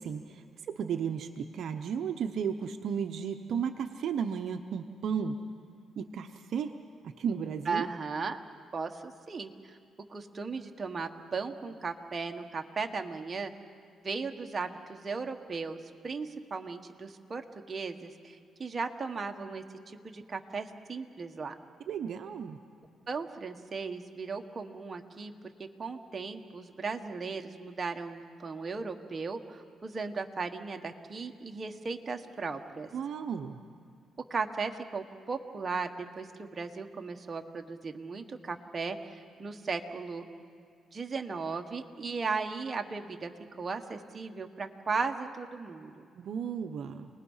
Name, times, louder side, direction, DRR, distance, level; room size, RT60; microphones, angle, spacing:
voice 1, 0.0-5.4 6.0-6.7 7.0-7.9 21.9-22.6 32.9-33.6 46.2-47.1, right 7 dB, 65° right, 6 dB, 0.9 m, -34 dB
voice 2, 7.6-8.4 8.7-9.8 10.1-13.5 14.0-21.5 23.1-25.5 25.8-32.9 34.3-35.9 36.1-40.3 40.9-43.3 43.6-46.1, right 4 dB, 30° right, 4 dB, 1.5 m, -36 dB
29.0 x 20.0 x 5.7 m, 2.3 s
cardioid pair, 90°, 0 cm